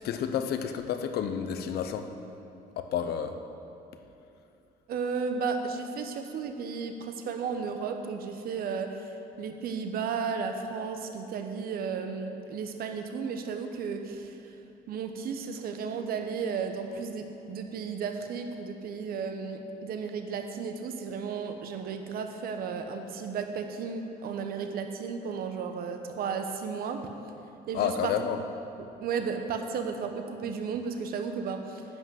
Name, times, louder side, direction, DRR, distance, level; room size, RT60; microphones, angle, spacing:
voice 1, 0.0-2.1 2.8-3.4 27.7-28.4, left 8 dB, 70° left, 8 dB, 0.8 m, -30 dB
voice 2, 4.9-14.5 14.9-27.1 27.7-28.1 28.8-31.8, right 5 dB, 65° right, 6 dB, 1.0 m, -34 dB
10.0 x 5.8 x 7.7 m, 2.8 s
cardioid pair, 110°, 17 cm